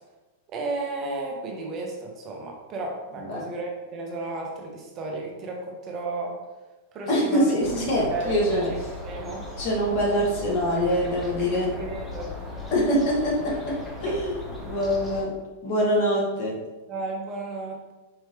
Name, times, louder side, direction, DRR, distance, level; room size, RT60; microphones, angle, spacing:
voice 1, 0.5-6.4 6.9-7.5 8.1-8.8 9.0-9.5 11.8-12.3 14.0-14.2 16.9-17.8, right 3 dB, 40° right, 0 dB, 0.9 m, -33 dB
voice 2, 7.1-8.7 9.6-11.7 12.7-13.7 14.0-15.3 15.6-16.5, equal, 50° left, -3 dB, 1.5 m, -24 dB
sound 1, 7.6-15.2, left 2 dB, 15° left, 0.9 m, -37 dB
4.7 x 3.1 x 2.9 m, 1.1 s
hypercardioid pair, 105°, 0 cm